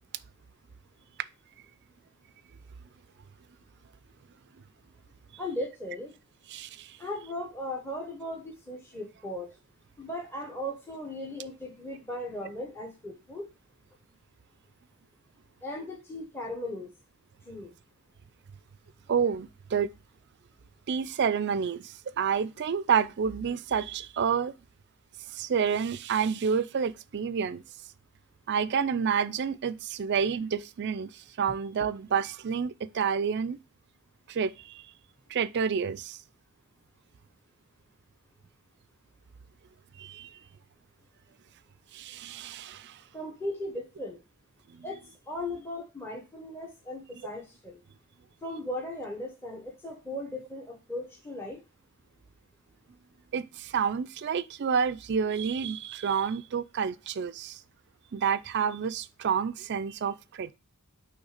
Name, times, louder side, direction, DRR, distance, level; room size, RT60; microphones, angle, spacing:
voice 1, 5.4-6.1 7.0-9.5 10.0-13.5 15.6-16.9 17.5-17.7 43.1-44.2 44.8-47.8 48.4-51.6, left 1 dB, 10° left, 1.0 m, -37 dB
voice 2, 6.5-7.0 19.1-19.9 20.9-24.5 25.3-27.6 28.5-33.6 34.3-34.8 35.3-36.2 40.0-40.4 41.9-43.0 44.7-44.9 53.3-57.6 58.1-60.5, right 6 dB, 50° right, 0.4 m, -29 dB
6.4 x 3.2 x 4.9 m
head